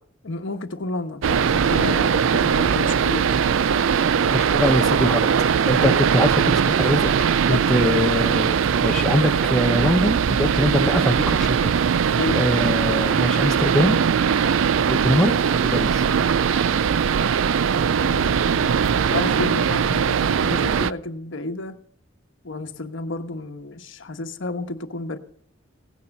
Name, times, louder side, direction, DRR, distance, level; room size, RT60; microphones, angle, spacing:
voice 1, 0.2-4.5 7.5-8.0 12.1-12.4 18.0-21.8 22.4-25.2, left 2 dB, 70° left, 6 dB, 1.2 m, -31 dB
sound 1, 1.2-20.9, right 7 dB, 75° right, 0.4 m, -20 dB
voice 2, 4.3-5.3 5.7-7.1 7.4-8.6 8.8-11.8 12.0-14.0 14.9-15.3 15.6-16.1, left 1 dB, 5° left, 1 dB, 0.7 m, -23 dB
17.0 x 9.4 x 5.4 m, 0.70 s
head